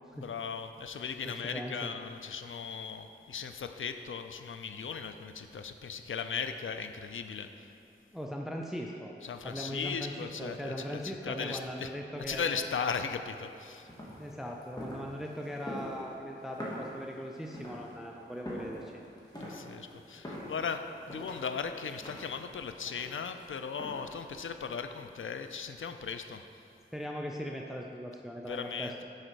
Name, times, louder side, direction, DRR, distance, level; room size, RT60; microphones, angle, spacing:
voice 1, 0.2-7.7 9.2-11.9 12.3-13.9 19.4-26.4 28.5-29.0, left 6 dB, 75° left, 8 dB, 0.4 m, -37 dB
voice 2, 1.2-1.9 8.1-9.1 9.4-12.6 14.2-19.0 26.9-29.0, equal, ahead, 0 dB, 0.5 m, -39 dB
sound 1, 13.6-24.3, equal, 20° left, 1.6 m, -45 dB
6.4 x 5.3 x 4.6 m, 2.7 s
wide cardioid pair, 50°, 21 cm